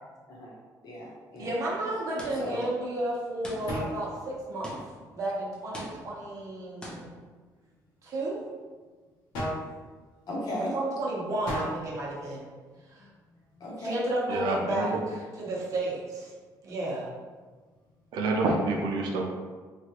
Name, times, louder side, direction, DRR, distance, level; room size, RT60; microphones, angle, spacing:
voice 1, 0.8-1.5 2.4-2.6 10.3-10.7 12.9-13.0 13.6-14.0, equal, 60° left, -4 dB, 0.9 m, -36 dB
voice 2, 1.4-4.7 5.1-7.2 8.0-8.4 10.7-12.5 12.9-13.1 13.8-14.9 15.4-16.3 16.6-17.1, right 1 dB, 45° right, -5 dB, 0.8 m, -32 dB
sound 1, 1.6-18.5, equal, 90° left, 1.0 m, -44 dB
sound 2, 2.2-2.7 3.4-4.0 4.6-5.2 5.7-6.3 6.8-7.2, equal, 10° left, 0.5 m, -43 dB
voice 3, 14.3-14.9 18.1-19.3, right 2 dB, 80° right, 1 dB, 0.5 m, -27 dB
3.1 x 2.4 x 2.9 m, 1.4 s
cardioid pair, 155°, 8 cm